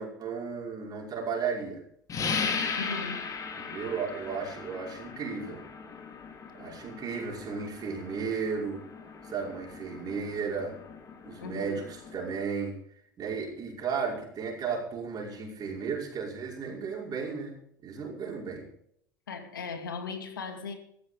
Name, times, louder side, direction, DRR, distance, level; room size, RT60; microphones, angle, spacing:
voice 1, 0.0-1.8 3.6-5.6 6.6-8.8 9.2-10.8 11.3-12.8 13.2-17.6 17.8-18.7, right 5 dB, 40° right, -1 dB, 5.5 m, -34 dB
sound 1, 2.1-12.4, left 5 dB, 30° left, 3.2 m, -38 dB
voice 2, 2.7-3.3 11.4-11.8 19.3-20.7, left 5 dB, 85° left, 5 dB, 2.6 m, -38 dB
14.5 x 14.0 x 5.1 m, 0.67 s
hypercardioid pair, 80°, 11 cm